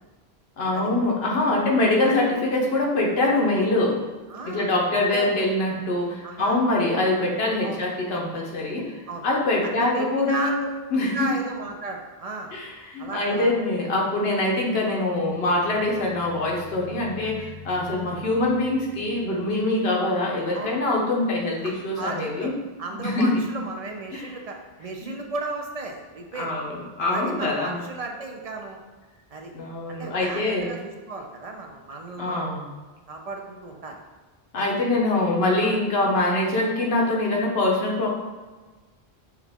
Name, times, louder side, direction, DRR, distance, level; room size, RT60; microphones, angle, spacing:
voice 1, 0.6-4.0 4.4-10.6 10.9-11.3 12.5-22.5 23.0-23.4 24.1-24.3 25.0-25.1 26.3-27.8 29.5-30.7 32.2-32.7 34.5-38.1, left 2 dB, 75° left, -2 dB, 1.2 m, -24 dB
voice 2, 4.3-4.7 5.1-5.3 6.2-6.6 7.6-7.8 9.1-9.3 9.6-10.7 11.1-12.5 13.0-13.6 20.5-20.8 21.6-22.5 22.8-26.5 27.0-28.8 29.3-29.5 29.9-32.5 33.1-34.0 34.5-34.7 35.6-35.8, right 3 dB, 45° right, 2 dB, 0.5 m, -34 dB
sound 1, 14.9-19.6, left 4 dB, 85° right, 1.4 m, -45 dB
6.3 x 2.3 x 3.5 m, 1.3 s
omnidirectional pair, 1.0 m